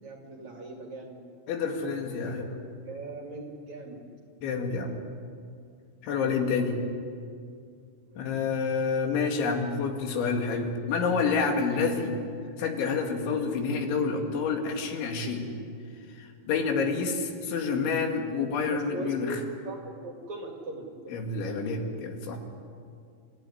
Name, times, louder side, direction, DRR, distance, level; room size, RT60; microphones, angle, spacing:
voice 1, 0.0-1.2 2.8-4.0 8.1-8.3 18.6-21.2, right 2 dB, 45° right, 1 dB, 2.8 m, -40 dB
voice 2, 1.5-2.6 4.4-5.0 6.0-6.8 8.2-12.2 12.6-15.5 16.2-19.4 21.1-22.4, left 5 dB, 75° left, 3 dB, 4.4 m, -28 dB
29.5 x 15.5 x 10.0 m, 2.3 s
omnidirectional pair, 5.5 m